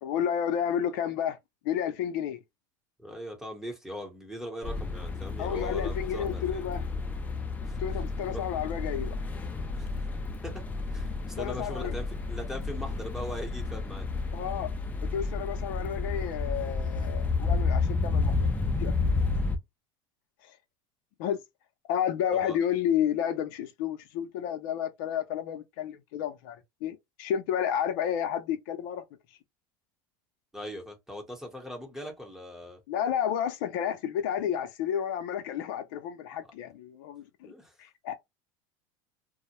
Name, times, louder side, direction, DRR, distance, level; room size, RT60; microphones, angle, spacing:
voice 1, 0.0-1.4 1.6-2.4 5.4-6.9 7.8-9.3 11.4-11.9 14.3-14.7 15.0-19.2 20.4-20.6 21.2-21.4 21.9-29.0 32.9-37.5 37.8-38.1, left 9 dB, 75° left, 0.5 m, -31 dB
voice 2, 3.0-6.6 7.6-7.8 8.3-8.4 9.6-10.1 10.4-10.6 10.9-14.1 22.3-22.6 30.5-32.8 37.5-37.7, equal, 5° right, 0.9 m, -40 dB
sound 1, 4.6-19.6, left 3 dB, 15° left, 0.4 m, -31 dB
2.2 x 2.0 x 2.8 m
supercardioid pair, 115°, 11 cm